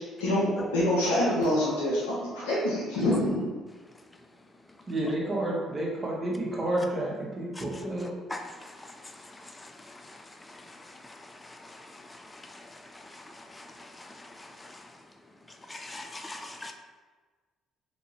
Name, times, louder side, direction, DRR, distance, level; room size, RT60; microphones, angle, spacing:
voice 1, 0.2-3.5, left 1 dB, 80° left, -6 dB, 0.6 m, -26 dB
voice 2, 4.9-8.1, right 1 dB, 35° right, -3 dB, 1.0 m, -30 dB
voice 3, 8.3-15.0 15.6-16.7, left 2 dB, 20° left, 5 dB, 0.3 m, -45 dB
3.0 x 2.5 x 2.8 m, 1.4 s
hypercardioid pair, 50°, 0 cm